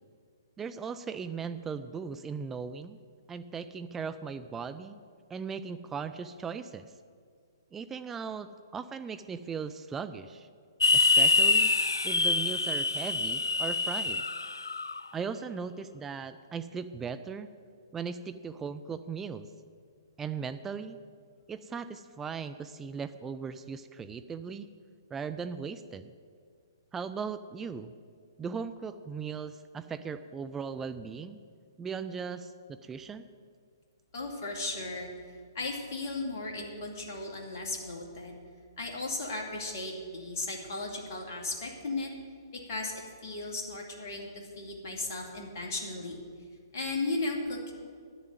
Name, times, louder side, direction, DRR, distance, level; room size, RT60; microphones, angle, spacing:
voice 1, 0.6-3.0 3.3-5.0 5.3-6.9 7.7-10.5 10.9-11.7 12.0-14.2 15.1-17.5 17.9-19.5 20.2-21.0 21.5-24.7 25.1-26.1 26.9-27.9 28.4-31.4 31.8-33.3, right 6 dB, 10° right, 11 dB, 0.4 m, -38 dB
sound 1, 10.8-15.0, left 3 dB, 80° left, 0.4 m, -25 dB
voice 2, 34.1-35.1 35.5-38.4 38.8-42.1 42.7-46.2 46.7-47.7, left 2 dB, 45° left, 0 dB, 2.3 m, -36 dB
10.5 x 7.0 x 9.2 m, 2.1 s
figure-of-eight pair, 120°, 2 cm